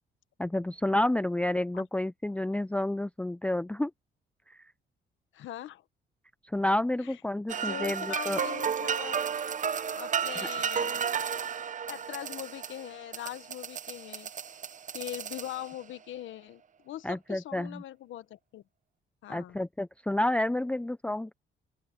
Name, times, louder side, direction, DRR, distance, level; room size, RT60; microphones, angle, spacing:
voice 1, 0.4-3.9 4.5-4.6 6.4-8.4 17.0-17.8 19.3-21.3, left 1 dB, 5° left, 0.6 m, -30 dB
voice 2, 5.3-5.8 7.0-7.1 7.5-9.3 10.0-11.0 11.9-14.3 14.9-18.6 19.2-19.6, left 12 dB, 75° left, 1.3 m, -41 dB
sound 1, 7.5-15.9, right 7 dB, 40° right, 0.8 m, -33 dB
open air
cardioid pair, 90°, 20 cm